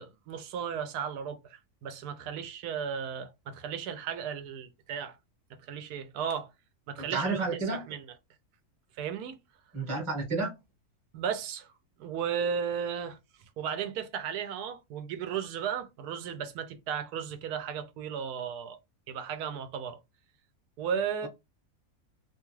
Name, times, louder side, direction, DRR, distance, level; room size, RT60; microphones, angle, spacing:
voice 1, 0.0-5.2 5.6-6.5 6.9-8.0 9.0-9.4 11.1-11.7 12.0-13.2 13.6-18.8 19.1-20.0 20.8-21.3, right 7 dB, 80° right, 1.1 m, -35 dB
voice 2, 7.0-7.8 9.7-10.5, right 3 dB, 20° right, 1.0 m, -30 dB
2.8 x 2.3 x 3.0 m
omnidirectional pair, 1.6 m